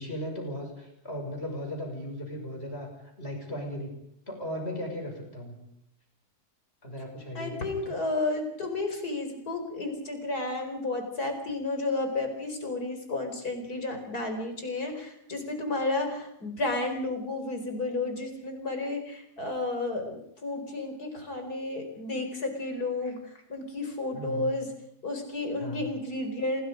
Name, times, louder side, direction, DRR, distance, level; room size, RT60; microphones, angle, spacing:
voice 1, 0.0-2.9 3.2-4.0 4.3-5.6 6.8-7.9 24.1-24.6 25.6-25.9, equal, 40° left, 2 dB, 6.6 m, -37 dB
voice 2, 7.3-24.7 25.0-26.6, left 2 dB, 75° left, 5 dB, 5.0 m, -32 dB
28.0 x 21.0 x 5.2 m, 0.76 s
omnidirectional pair, 1.7 m